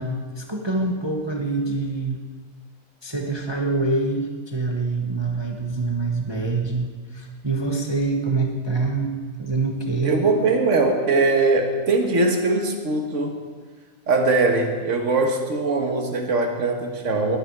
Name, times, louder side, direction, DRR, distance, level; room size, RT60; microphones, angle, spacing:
voice 1, 0.0-2.2 3.0-9.1 9.4-10.2, right 3 dB, 20° right, 1 dB, 1.1 m, -25 dB
voice 2, 10.0-13.4 14.1-17.4, right 3 dB, 55° right, 3 dB, 1.9 m, -21 dB
21.0 x 10.5 x 4.7 m, 1.5 s
omnidirectional pair, 1.6 m